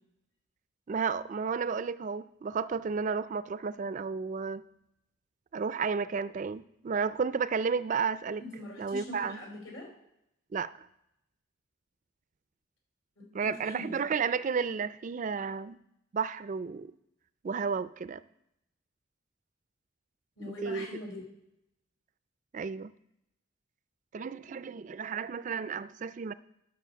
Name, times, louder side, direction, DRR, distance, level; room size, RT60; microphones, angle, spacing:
voice 1, 0.9-4.6 5.5-8.4 8.8-9.4 10.5-10.9 13.3-15.8 16.1-16.9 17.4-18.2 20.6-20.9 22.5-22.9 24.1-26.3, right 5 dB, 40° right, 15 dB, 0.3 m, -32 dB
voice 2, 8.4-9.9 13.2-14.1 20.4-21.2, left 1 dB, 75° left, 1 dB, 4.4 m, -42 dB
11.5 x 6.3 x 6.9 m, 0.81 s
head